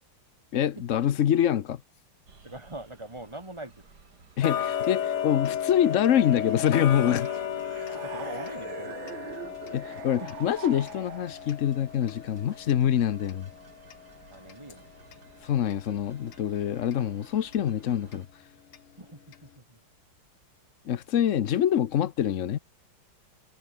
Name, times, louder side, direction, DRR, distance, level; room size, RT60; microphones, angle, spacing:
voice 1, 0.5-1.8 4.4-7.3 9.7-13.5 15.4-18.3 20.8-22.6, left 10 dB, 65° left, 0.7 m, -25 dB
sound 1, 2.3-18.3, right 4 dB, 50° right, 3.3 m, -55 dB
voice 2, 2.4-3.9 8.0-9.6 10.3-10.5 14.3-14.9 19.0-19.8, right 1 dB, 15° right, 3.1 m, -43 dB
Tick-tock, 4.4-15.3 15.7-15.8 16.3-16.4 16.9-17.0 17.5-17.6 18.1-18.2 18.7-18.8 19.3-19.4, left 9 dB, 90° left, 2.4 m, -34 dB
sound 2, 5.8-11.6, right 13 dB, 70° right, 1.5 m, -44 dB
omnidirectional pair, 2.3 m